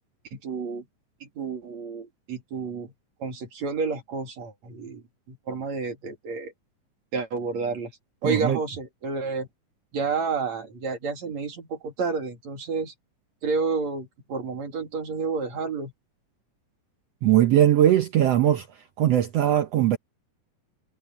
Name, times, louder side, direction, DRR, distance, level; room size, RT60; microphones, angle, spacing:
voice 1, 0.3-0.9 1.2-2.9 3.2-6.5 7.1-7.9 8.2-9.5 9.9-12.9 13.4-15.9, right 4 dB, 55° right, 3.8 m, -30 dB
voice 2, 8.2-8.6 17.2-18.7 19.0-20.0, right 12 dB, 80° right, 1.4 m, -20 dB
omnidirectional pair, 3.9 m